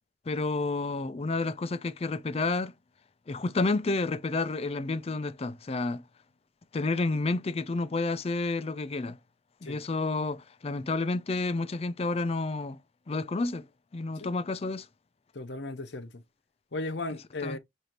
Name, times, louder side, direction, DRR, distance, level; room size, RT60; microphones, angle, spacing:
voice 1, 0.3-2.7 3.3-6.0 6.7-9.2 9.6-12.8 13.1-13.6 13.9-14.9 17.4-17.6, left 3 dB, 35° left, 0.4 m, -30 dB
voice 2, 15.3-16.2 16.7-17.6, left 2 dB, 70° left, 0.8 m, -36 dB
6.5 x 2.7 x 2.9 m
head